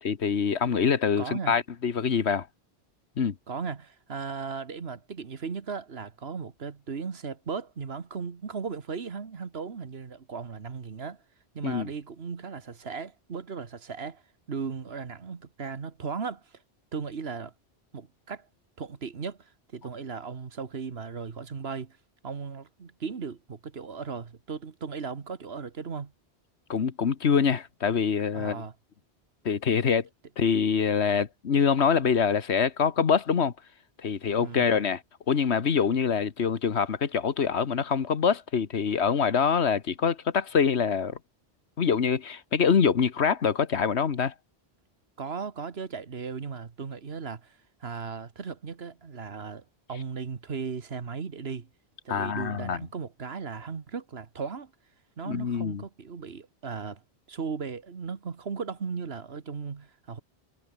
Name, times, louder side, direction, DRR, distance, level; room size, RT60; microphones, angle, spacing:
voice 1, 0.0-2.5 3.2-3.3 11.6-11.9 26.7-28.6 29.4-30.1 30.4-33.5 34.0-35.0 35.3-41.2 41.8-44.3 52.1-52.8 55.2-55.8, left 6 dB, 85° left, 1.5 m, -25 dB
voice 2, 1.2-1.6 3.5-11.2 11.5-14.2 14.5-16.6 16.9-17.5 17.9-18.5 18.8-22.0 22.2-26.1 28.3-28.7 34.4-34.7 45.2-51.7 52.0-54.7 55.2-57.0 57.3-60.2, right 5 dB, 70° right, 1.7 m, -37 dB
omnidirectional pair, 1.1 m